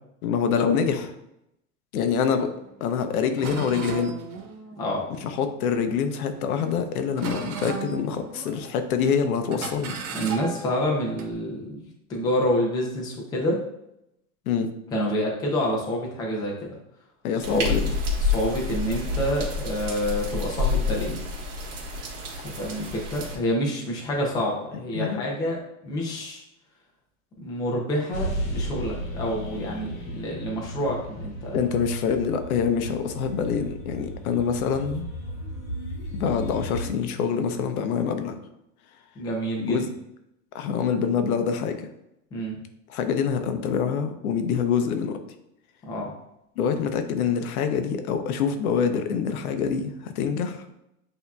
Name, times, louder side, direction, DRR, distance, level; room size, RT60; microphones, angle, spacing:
voice 1, 0.2-1.1 1.9-2.5 2.8-4.1 5.2-10.0 14.5-14.7 17.2-17.9 24.9-25.2 31.5-35.1 36.1-38.3 39.6-39.9 40.5-41.9 42.9-45.2 46.6-50.8, left 6 dB, 85° left, 7 dB, 0.8 m, -25 dB
sound 1, 2.9-3.0 3.4-5.9 6.3-6.8 7.2-8.8 9.0-9.2 9.5-11.3, right 5 dB, 85° right, 1.1 m, -36 dB
voice 2, 10.1-13.6 14.9-16.5 17.5-17.8 18.3-21.2 22.4-25.6 25.8-26.4 27.4-31.7 39.2-39.8 42.3-42.6 45.9-46.1, equal, 10° left, -2 dB, 0.5 m, -28 dB
sound 2, 17.4-23.4, left 3 dB, 55° right, 1.6 m, -28 dB
sound 3, 28.1-36.9, right 1 dB, 40° left, 1.2 m, -34 dB
8.1 x 2.8 x 2.3 m, 0.84 s
supercardioid pair, 160°, 42 cm